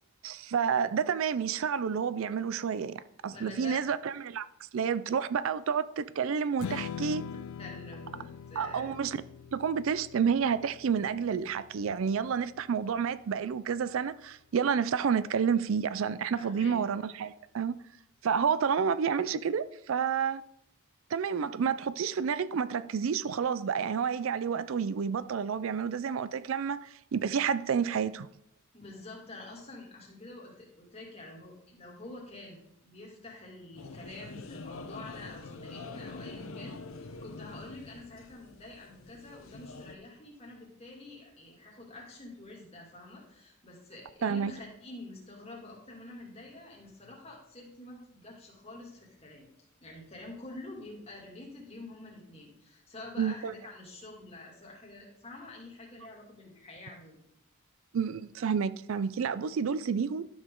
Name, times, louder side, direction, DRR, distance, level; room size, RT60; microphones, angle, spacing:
voice 1, 0.2-4.5 4.7-7.2 8.6-9.2 9.5-17.8 18.2-20.4 21.1-28.3 44.2-44.5 53.2-53.5 57.9-60.2, right 6 dB, 65° right, 0.4 m, -30 dB
voice 2, 3.3-3.8 6.6-8.9 16.3-16.7 28.7-49.5 49.8-57.2, left 2 dB, 30° left, 2.6 m, -47 dB
Strum, 6.6-12.9, left 7 dB, 90° left, 0.3 m, -43 dB
sound 1, 33.8-40.0, left 3 dB, 70° left, 0.8 m, -45 dB
12.0 x 6.3 x 3.8 m
head